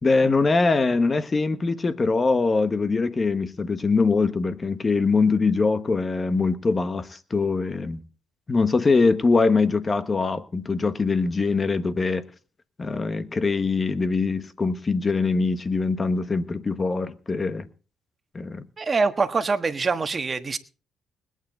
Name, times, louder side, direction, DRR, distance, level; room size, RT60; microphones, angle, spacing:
voice 1, 0.0-8.0 8.5-12.3 12.8-17.7 18.3-18.7, left 4 dB, 30° left, 1.4 m, -23 dB
voice 2, 18.8-20.6, right 4 dB, 35° right, 1.4 m, -24 dB
21.0 x 9.3 x 4.0 m
cardioid pair, 90°, 0 cm